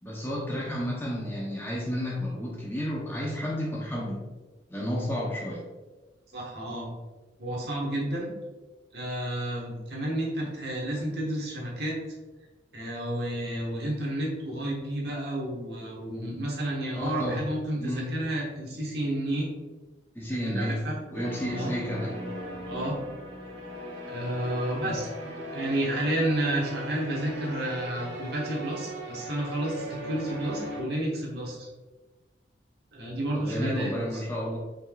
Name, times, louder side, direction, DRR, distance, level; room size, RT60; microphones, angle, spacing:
voice 1, 0.0-4.2 4.7-5.6 16.9-17.4 17.8-18.1 20.1-20.8 21.1-22.2 24.8-25.0 33.3-34.6, equal, 10° left, -4 dB, 0.7 m, -31 dB
voice 2, 6.3-6.9 7.4-8.3 8.9-12.0 12.7-19.5 20.5-20.9 21.5-21.7 22.6-23.0 24.1-31.7 32.9-34.2, right 1 dB, 60° right, -3 dB, 1.3 m, -31 dB
sound 1, 21.1-30.8, equal, 80° right, 1.2 m, -38 dB
5.5 x 3.7 x 2.3 m, 1.2 s
head